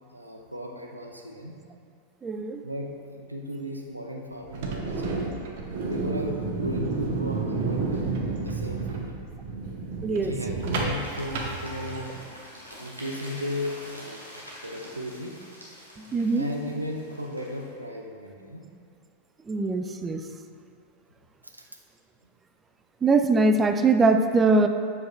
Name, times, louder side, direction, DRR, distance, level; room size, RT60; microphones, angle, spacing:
voice 1, 0.1-1.6 2.6-5.3 5.9-9.1 10.1-12.1 12.8-14.2 14.6-15.4 16.3-18.6 21.4-21.7, left 1 dB, 85° right, 1 dB, 0.5 m, -35 dB
voice 2, 2.2-2.6 10.0-10.3 16.0-16.5 19.5-20.2 23.0-24.7, right 3 dB, 20° right, 7 dB, 0.3 m, -22 dB
sound 1, 4.4-12.3, right 3 dB, 50° right, 0.7 m, -31 dB
sound 2, 10.5-17.7, equal, 90° left, 1.2 m, -46 dB
7.5 x 5.3 x 2.4 m, 2.4 s
figure-of-eight pair, 90°, 0 cm